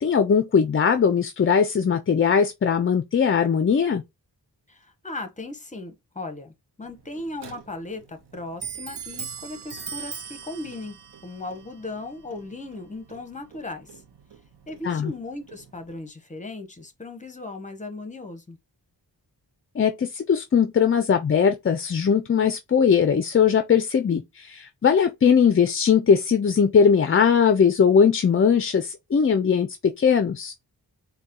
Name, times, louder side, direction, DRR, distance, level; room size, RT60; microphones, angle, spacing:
voice 1, 0.0-4.0 14.8-15.1 19.8-30.5, left 6 dB, 35° left, 0.4 m, -20 dB
voice 2, 4.7-6.5 6.8-14.0 14.7-18.6, left 2 dB, 20° left, 0.8 m, -37 dB
Clock, 6.8-16.1, right 6 dB, 70° right, 0.8 m, -42 dB
4.0 x 2.2 x 3.6 m
wide cardioid pair, 95°, 41 cm